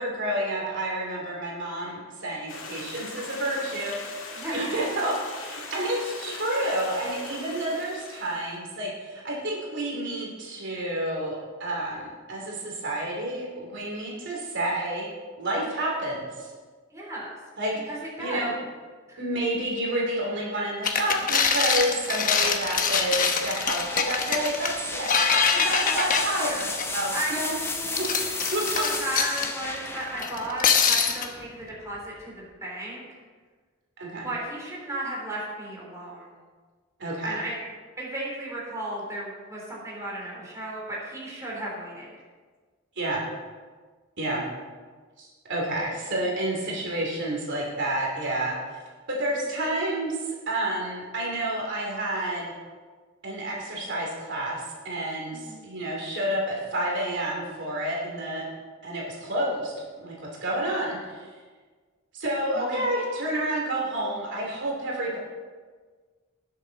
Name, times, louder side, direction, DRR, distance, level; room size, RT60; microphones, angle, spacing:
voice 1, 0.0-4.2 4.5-15.1 15.4-16.5 17.6-17.7 18.2-18.5 19.2-25.1 25.5-27.6 28.0-28.9 34.0-34.3 37.0-37.4 42.9-43.2 44.2-44.4 45.2-48.6 49.1-52.5 53.2-58.5 58.8-60.1 60.4-61.3 62.1-65.2, right 1 dB, 60° right, -2 dB, 2.9 m, -29 dB
Stream, 2.5-8.6, left 3 dB, 70° left, 2.2 m, -40 dB
voice 2, 4.3-4.7 16.9-17.3 17.9-18.5 19.1-19.2 25.7-26.1 27.1-27.4 27.8-28.2 28.7-33.0 34.2-36.3 37.2-37.5 38.0-42.1 55.3-55.6 62.5-62.9, right 1 dB, 15° right, -5 dB, 3.4 m, -35 dB
sound 1, 20.8-27.2 27.7-29.5 30.2-31.3, left 6 dB, 40° left, 1.0 m, -24 dB
sound 2, 22.3-32.1, left 3 dB, 10° left, 0.9 m, -34 dB
19.5 x 7.6 x 4.0 m, 1.5 s
head